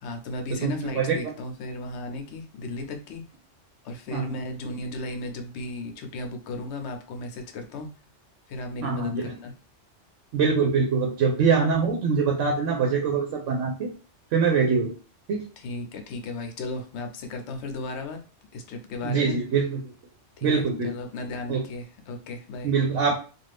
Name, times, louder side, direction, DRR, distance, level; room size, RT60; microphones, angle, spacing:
voice 1, 0.0-3.2 3.8-7.9 8.5-9.5 15.6-18.2 18.5-19.4 20.4-22.7, left 2 dB, 70° left, 5 dB, 0.9 m, -35 dB
voice 2, 0.5-1.3 4.1-4.3 8.8-9.3 10.3-13.9 14.3-14.9 15.3-15.5 19.0-19.8 20.4-20.9 21.5-21.6 22.6-23.1, right 5 dB, 80° right, 1 dB, 1.0 m, -24 dB
2.6 x 2.4 x 3.2 m, 0.36 s
omnidirectional pair, 1.3 m